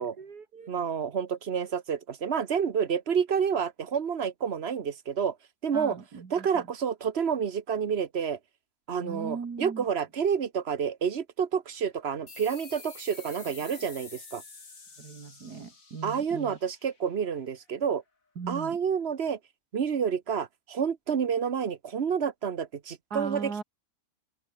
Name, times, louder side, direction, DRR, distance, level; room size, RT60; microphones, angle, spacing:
voice 1, 0.0-0.7 5.7-6.6 9.0-9.9 15.0-16.6 18.4-18.8 23.1-23.6, right 5 dB, 85° right, 2.8 m, -39 dB
voice 2, 0.7-5.4 5.6-6.0 6.3-8.4 8.9-14.4 16.0-18.0 18.5-19.4 19.7-23.6, right 7 dB, 45° right, 1.3 m, -29 dB
sound 1, 12.3-17.4, left 4 dB, 60° left, 3.4 m, -48 dB
open air
omnidirectional pair, 1.6 m